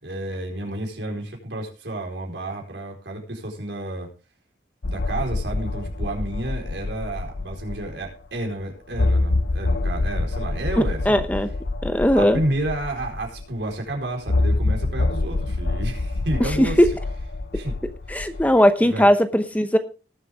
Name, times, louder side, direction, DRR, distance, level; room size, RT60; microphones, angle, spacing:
voice 1, 0.0-4.1 4.8-11.2 12.1-16.8 17.5-17.7 18.8-19.1, right 1 dB, 75° right, 1 dB, 4.5 m, -30 dB
sound 1, 4.8-8.1 8.4-8.5 8.9-13.5 14.3-18.6, left 2 dB, 75° left, 0.8 m, -26 dB
voice 2, 11.1-11.5 11.8-12.4 16.4-16.9 18.1-19.8, equal, 10° left, 9 dB, 0.8 m, -18 dB
19.0 x 7.3 x 3.6 m, 0.33 s
head